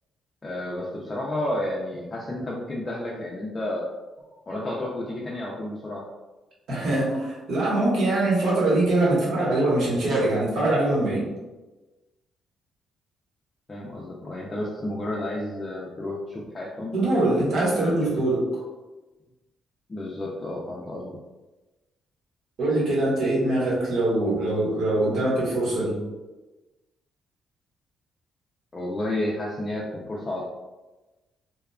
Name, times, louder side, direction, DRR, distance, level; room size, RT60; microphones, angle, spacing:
voice 1, 0.4-3.8 4.5-6.0 13.7-17.0 17.7-18.3 19.9-21.2 28.7-30.4, left 1 dB, 30° left, -4 dB, 0.4 m, -31 dB
voice 2, 6.7-11.3 16.9-18.6 22.6-26.0, right 2 dB, 70° right, -6 dB, 1.1 m, -23 dB
2.8 x 2.3 x 2.2 m, 1.1 s
cardioid pair, 90°, 0 cm